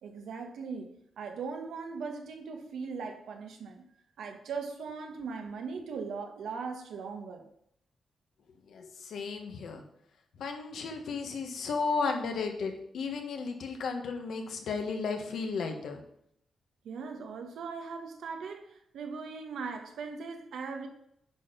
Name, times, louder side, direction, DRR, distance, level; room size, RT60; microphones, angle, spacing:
voice 1, 0.0-3.8 4.2-7.5 12.1-12.2 16.8-20.9, right 5 dB, 85° right, 4 dB, 1.4 m, -39 dB
voice 2, 8.7-9.8 10.4-16.0, left 4 dB, 75° left, 4 dB, 1.5 m, -34 dB
9.8 x 4.5 x 5.2 m, 0.73 s
wide cardioid pair, 125°, 0 cm